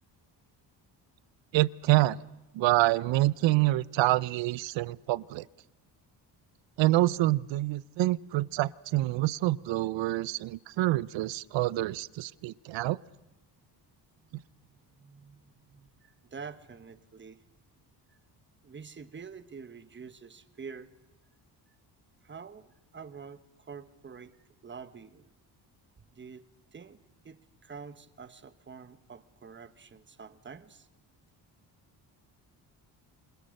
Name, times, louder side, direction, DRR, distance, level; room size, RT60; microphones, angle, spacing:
voice 1, 1.5-2.2 2.5-5.5 6.8-13.0, right 17 dB, 85° right, 21 dB, 0.7 m, -27 dB
voice 2, 14.2-17.4 18.6-20.9 22.2-24.4 24.6-25.3 26.1-26.5 26.7-30.9, right 5 dB, 25° right, 12 dB, 1.3 m, -47 dB
28.0 x 20.5 x 6.5 m, 1.0 s
cardioid pair, 120°, 44 cm